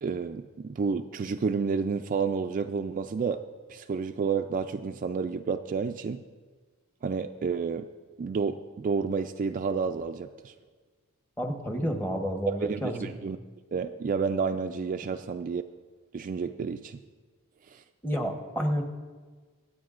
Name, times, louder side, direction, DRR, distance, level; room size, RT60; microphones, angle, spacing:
voice 1, 0.0-3.4 3.7-6.2 7.0-7.9 8.2-10.5 12.5-13.4 13.7-15.6 16.1-17.0 17.7-17.8, right 5 dB, 40° right, 7 dB, 0.3 m, -30 dB
voice 2, 11.4-13.1 18.0-18.8, equal, 10° left, 3 dB, 1.0 m, -30 dB
25.5 x 8.5 x 2.5 m, 1.4 s
head